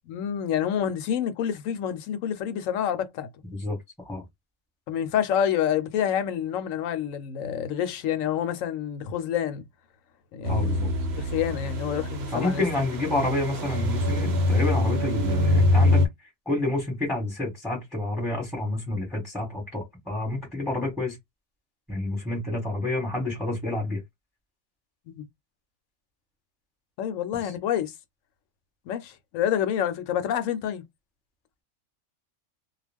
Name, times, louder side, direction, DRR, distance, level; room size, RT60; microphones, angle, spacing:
voice 1, 0.1-3.3 4.9-9.6 10.3-10.7 11.2-12.6 25.1-25.3 27.0-27.9 28.9-30.8, left 9 dB, 75° left, 1.0 m, -28 dB
voice 2, 3.5-4.2 10.4-10.9 12.3-16.1 16.4-21.2 21.9-24.0 27.4-27.5, left 2 dB, ahead, 1.1 m, -29 dB
sound 1, 10.4-16.1, left 2 dB, 55° right, 0.9 m, -24 dB
2.3 x 2.2 x 3.4 m
omnidirectional pair, 1.4 m